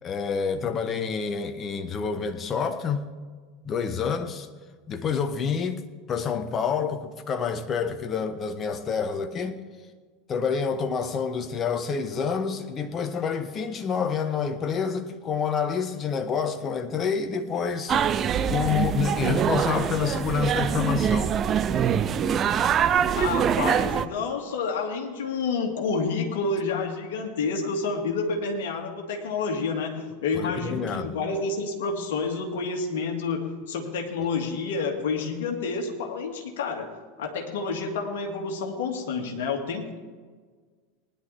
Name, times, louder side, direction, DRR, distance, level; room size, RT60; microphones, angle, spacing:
voice 1, 0.0-3.1 3.6-4.5 4.9-5.8 6.1-9.6 10.3-18.0 18.5-21.3 30.3-31.1, left 6 dB, 30° left, 1.2 m, -28 dB
sound 1, 17.9-24.1, right 8 dB, 35° right, 0.6 m, -24 dB
voice 2, 23.1-40.0, left 4 dB, 65° left, 2.2 m, -29 dB
19.5 x 10.5 x 3.5 m
figure-of-eight pair, 80°, 0 cm